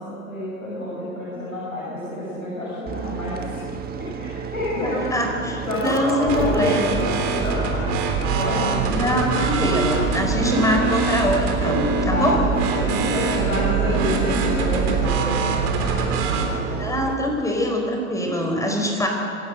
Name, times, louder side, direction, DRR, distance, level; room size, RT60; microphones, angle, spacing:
voice 1, 0.0-3.6 4.0-5.0 5.6-7.9 8.3-9.2 9.8-9.9 10.2-10.3 12.1-17.0, left 1 dB, 80° left, -7 dB, 7.2 m, -28 dB
sound 1, 2.9-17.1, right 7 dB, 20° right, 1.5 m, -31 dB
voice 2, 4.8-7.0 8.9-12.4 16.8-19.1, left 1 dB, 10° left, 2 dB, 4.5 m, -23 dB
sound 2, 6.3-16.4, right 4 dB, 40° right, 3.7 m, -24 dB
26.5 x 12.5 x 7.8 m, 2.5 s
figure-of-eight pair, 95°, 42 cm